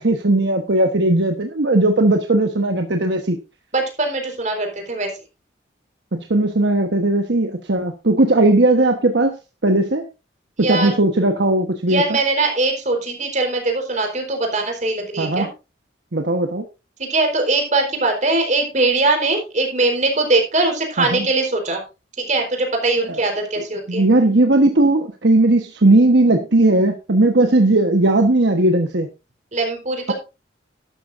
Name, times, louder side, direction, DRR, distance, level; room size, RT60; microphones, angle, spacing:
voice 1, 0.0-3.4 6.1-9.3 9.6-10.0 10.6-12.0 15.2-15.5 16.1-16.6 21.0-21.3 23.1-23.2 23.9-29.1, right 2 dB, 65° right, 5 dB, 1.2 m, -17 dB
voice 2, 3.7-5.1 10.6-10.9 11.9-15.5 17.0-21.8 22.2-24.1 29.5-30.1, right 2 dB, 40° right, 3 dB, 4.3 m, -21 dB
12.5 x 12.0 x 2.6 m, 0.28 s
head